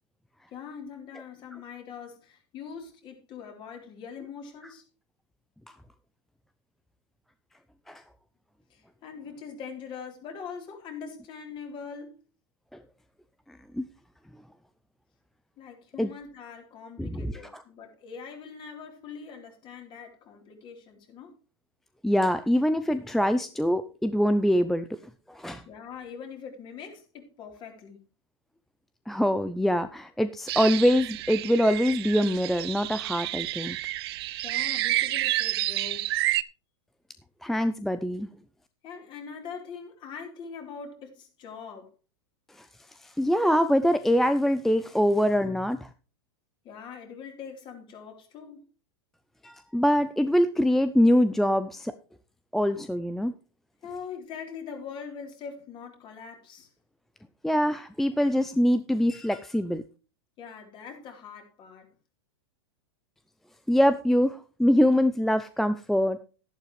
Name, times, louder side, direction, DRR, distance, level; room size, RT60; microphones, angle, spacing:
voice 1, 0.5-4.9 8.7-12.2 15.6-21.4 25.7-28.0 34.4-36.1 38.8-41.9 46.6-48.7 53.8-56.7 60.4-61.9, left 6 dB, 35° left, 3.8 m, -42 dB
voice 2, 13.5-13.9 16.0-16.1 17.0-17.3 22.0-25.0 25.3-25.6 29.1-33.8 37.4-38.3 42.6-42.7 43.0-45.9 49.4-51.9 52.5-53.3 57.4-59.8 63.7-66.2, equal, ahead, 0.5 m, -24 dB
sound 1, 30.5-36.4, right 16 dB, 65° right, 0.6 m, -30 dB
12.0 x 11.0 x 3.2 m
hypercardioid pair, 125°, 14 cm